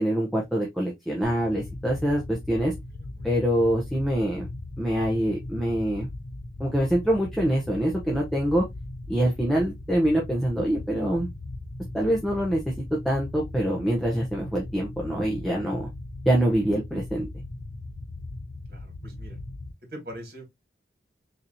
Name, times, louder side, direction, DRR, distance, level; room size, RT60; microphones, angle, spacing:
voice 1, 0.0-2.7 3.2-4.5 4.8-6.1 6.6-8.6 9.1-11.3 11.9-15.9 16.3-17.3, right 1 dB, ahead, 0.7 m, -25 dB
sound 1, 1.2-19.7, left 2 dB, 60° left, 0.6 m, -39 dB
voice 2, 2.9-3.3 18.7-19.4 19.9-20.4, right 1 dB, 55° right, 1.7 m, -42 dB
4.0 x 2.9 x 2.6 m
head